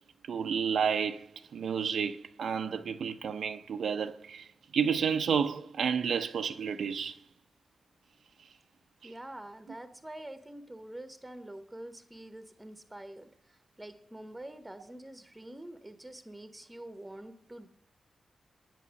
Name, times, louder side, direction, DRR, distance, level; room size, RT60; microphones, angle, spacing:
voice 1, 0.3-7.2, right 7 dB, 80° right, 0.6 m, -31 dB
voice 2, 9.0-17.7, right 1 dB, 10° right, 1.0 m, -46 dB
9.6 x 8.4 x 6.4 m
wide cardioid pair, 165°, 0 cm